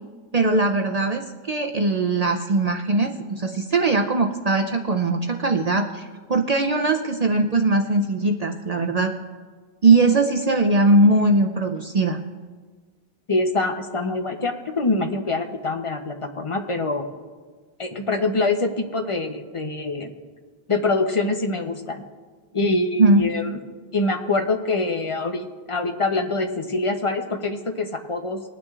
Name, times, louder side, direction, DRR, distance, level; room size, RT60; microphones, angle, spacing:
voice 1, 0.3-9.1 9.8-12.2 23.0-23.3, right 2 dB, 45° right, 3 dB, 0.6 m, -20 dB
voice 2, 13.3-17.1 17.8-20.1 20.7-22.0 22.5-23.6 23.9-28.4, left 2 dB, 35° left, 5 dB, 0.8 m, -24 dB
21.0 x 9.2 x 2.4 m, 1.5 s
omnidirectional pair, 1.1 m